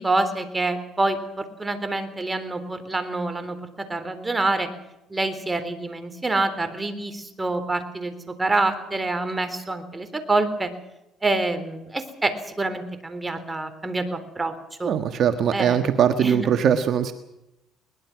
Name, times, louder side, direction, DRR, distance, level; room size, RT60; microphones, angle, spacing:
voice 1, 0.0-4.7 5.1-8.1 8.4-10.7 11.2-14.5 14.8-14.9 15.5-15.8 16.2-16.5, right 2 dB, 15° right, 9 dB, 3.7 m, -26 dB
voice 2, 14.8-17.1, right 8 dB, 60° right, 7 dB, 1.6 m, -21 dB
22.0 x 20.5 x 6.1 m, 0.90 s
cardioid pair, 95°, 0 cm